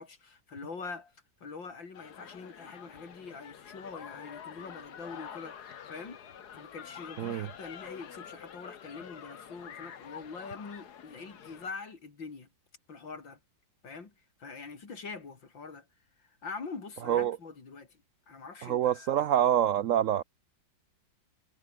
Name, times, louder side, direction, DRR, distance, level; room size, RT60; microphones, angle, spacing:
voice 1, 0.0-6.2 6.5-12.5 12.9-13.4 13.8-14.1 14.4-15.9 16.2-18.0 18.3-19.1, left 4 dB, 80° left, 4.2 m, -44 dB
sound 1, 1.9-11.7, left 8 dB, 60° left, 1.8 m, -47 dB
voice 2, 18.6-20.2, right 10 dB, 85° right, 0.6 m, -26 dB
omnidirectional pair, 2.0 m